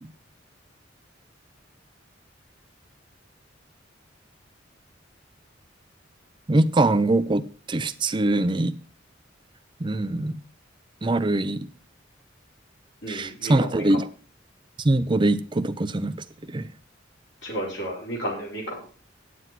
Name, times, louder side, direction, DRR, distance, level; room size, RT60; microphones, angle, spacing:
voice 1, 6.5-8.7 9.8-10.4 11.0-11.7 13.1-14.1 14.8-16.7, right 2 dB, 25° right, 0.5 m, -23 dB
voice 2, 13.0-13.9 17.4-18.8, right 1 dB, 65° left, 4.6 m, -32 dB
9.5 x 7.8 x 5.9 m
head